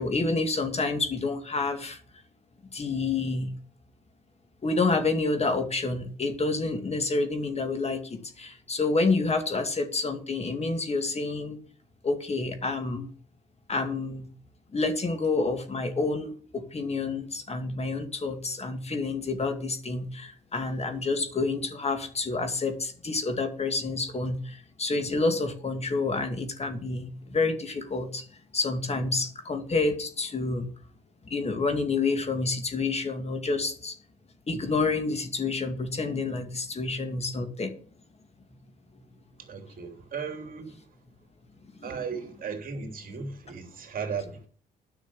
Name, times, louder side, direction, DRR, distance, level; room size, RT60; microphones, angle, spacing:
voice 1, 0.0-2.0 2.7-3.5 4.6-11.6 12.0-13.1 13.7-14.2 14.7-28.3 28.5-30.7 31.3-34.0 34.5-37.7 41.8-42.0, left 3 dB, 35° left, 2.3 m, -28 dB
voice 2, 39.4-40.9 41.8-44.5, right 5 dB, 50° right, 3.1 m, -36 dB
10.0 x 6.3 x 7.7 m
cardioid pair, 80°, 19 cm